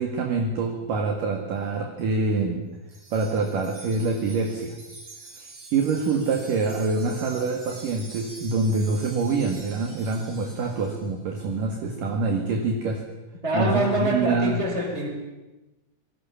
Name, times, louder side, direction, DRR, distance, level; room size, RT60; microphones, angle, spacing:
voice 1, 0.0-2.7 3.1-4.7 5.4-13.0 13.5-14.6, right 3 dB, 55° right, 3 dB, 3.2 m, -26 dB
Wind chime, 2.9-11.1, right 2 dB, 30° right, 5.8 m, -45 dB
voice 2, 13.4-15.1, right 1 dB, 15° right, 1 dB, 5.5 m, -25 dB
27.0 x 20.5 x 7.2 m, 1.1 s
omnidirectional pair, 5.4 m